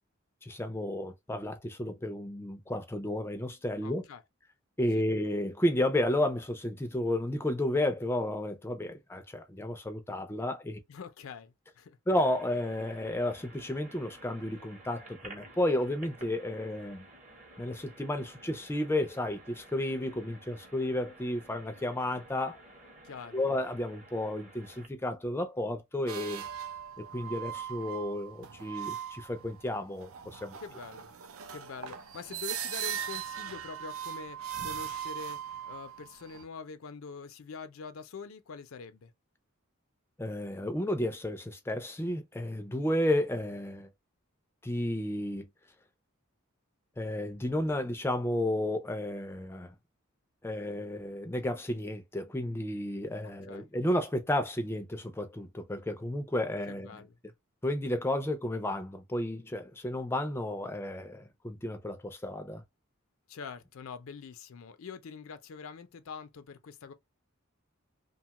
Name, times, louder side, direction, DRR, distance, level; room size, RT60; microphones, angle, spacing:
voice 1, 0.4-4.0 4.8-10.8 12.1-17.0 17.6-22.6 23.3-26.5 27.0-30.6 40.2-43.9 44.6-45.5 47.0-49.7 50.4-56.9 57.6-62.6, left 1 dB, 10° left, 0.3 m, -32 dB
voice 2, 3.8-4.2 5.0-5.1 10.9-12.0 23.0-23.4 30.6-31.1 31.5-39.1 53.2-53.7 56.7-57.2 63.3-66.9, left 5 dB, 80° left, 0.4 m, -45 dB
sound 1, 12.1-24.9, right 2 dB, 35° right, 0.8 m, -53 dB
sound 2, 26.1-36.4, right 9 dB, 80° right, 0.4 m, -40 dB
2.8 x 2.2 x 2.8 m
head